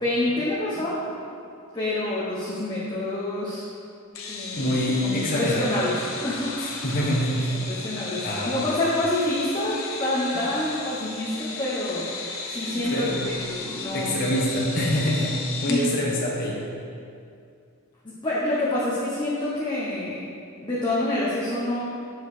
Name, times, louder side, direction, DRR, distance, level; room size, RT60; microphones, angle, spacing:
voice 1, 0.0-1.0 1.7-3.6 4.3-4.8 5.0-6.0 6.2-6.8 7.5-12.0 12.5-14.1 15.7-15.9 18.0-20.2 20.6-21.8, left 1 dB, 20° left, -8 dB, 1.0 m, -27 dB
sound 1, 4.1-15.9, left 3 dB, 70° left, 0.9 m, -35 dB
voice 2, 4.6-5.6 6.6-7.5 8.2-8.6 12.7-13.3 13.9-16.6, equal, 40° left, -5 dB, 1.3 m, -25 dB
7.8 x 4.7 x 4.9 m, 2.4 s
head